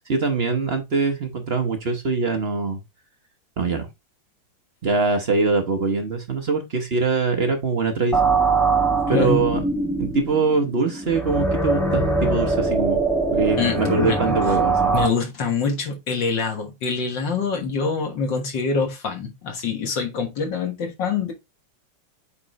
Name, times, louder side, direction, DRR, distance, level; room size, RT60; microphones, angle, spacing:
voice 1, 0.1-2.8 3.6-3.9 4.8-8.3 9.1-9.6 10.0-13.0 13.3-14.9, right 4 dB, 45° right, 0.9 m, -23 dB
sound 1, 8.1-15.1, right 3 dB, ahead, 0.7 m, -22 dB
voice 2, 9.1-9.4 13.6-14.4 14.9-21.3, left 5 dB, 65° left, 1.9 m, -25 dB
8.5 x 3.8 x 3.1 m
omnidirectional pair, 2.2 m